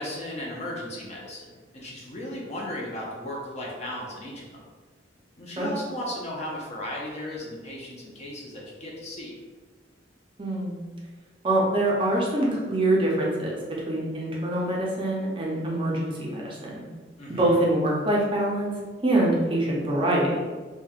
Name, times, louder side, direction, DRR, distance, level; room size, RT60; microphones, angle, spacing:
voice 1, 0.0-4.7 5.4-9.3 17.2-17.6, left 1 dB, 35° left, -3 dB, 0.5 m, -36 dB
voice 2, 10.4-10.8 11.4-13.6 13.9-16.8 17.4-18.7 19.0-20.4, right 1 dB, 25° right, -4 dB, 0.5 m, -24 dB
3.0 x 2.2 x 2.4 m, 1.3 s
head